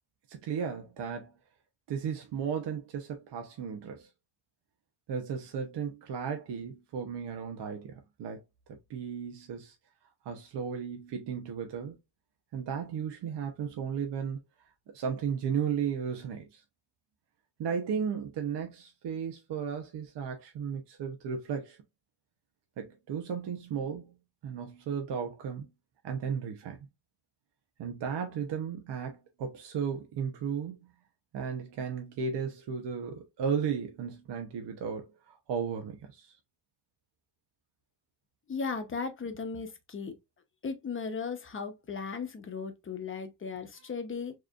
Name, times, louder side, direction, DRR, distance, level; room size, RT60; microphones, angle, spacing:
voice 1, 0.3-1.3 1.9-4.1 5.1-8.4 8.9-9.7 10.2-12.0 12.5-14.4 14.9-16.6 17.6-21.8 22.8-24.1 24.4-25.7 26.0-26.8 27.8-30.8 31.3-36.3, right 7 dB, 65° right, 1.0 m, -35 dB
voice 2, 38.5-40.2 40.6-44.3, left 5 dB, 25° left, 0.9 m, -36 dB
4.6 x 3.1 x 2.4 m
cardioid pair, 130°, 45 cm